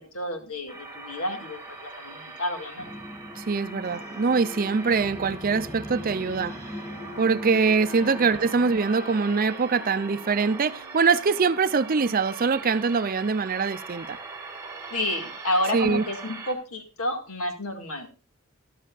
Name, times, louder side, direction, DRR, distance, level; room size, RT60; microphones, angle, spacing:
voice 1, 0.1-2.9 8.0-8.3 14.9-18.3, left 1 dB, 80° left, 2.2 m, -30 dB
sound 1, 0.7-16.5, right 3 dB, 15° right, 1.6 m, -41 dB
sound 2, 2.8-8.7, left 1 dB, 15° left, 0.4 m, -40 dB
voice 2, 3.4-6.5 7.2-14.2 15.7-16.0, right 5 dB, 40° right, 0.5 m, -23 dB
Wind instrument woodwind instrument, 6.4-12.7, left 2 dB, 60° left, 2.6 m, -48 dB
13.5 x 12.0 x 2.4 m
head